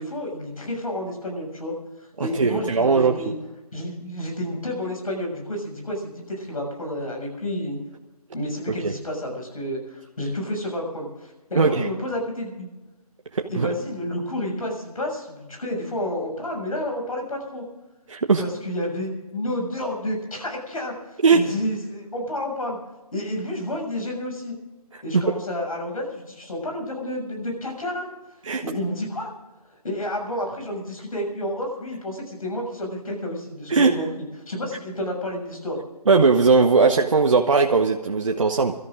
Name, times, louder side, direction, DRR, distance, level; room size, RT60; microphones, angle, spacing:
voice 1, 0.0-1.7 2.0-3.3 3.7-7.8 8.3-12.7 13.5-17.6 18.4-22.8 23.1-24.5 25.0-28.1 28.6-29.3 29.8-34.1 34.5-35.8, left 1 dB, 65° left, 2 dB, 6.8 m, -30 dB
voice 2, 2.2-3.2 8.7-8.9 11.6-11.9 13.3-13.7 18.1-18.4 21.2-21.4 24.9-25.2 28.4-28.6 33.7-33.9 36.1-38.7, right 4 dB, 55° right, 3 dB, 1.0 m, -19 dB
24.0 x 13.5 x 3.8 m, 1.1 s
figure-of-eight pair, 165°, 20 cm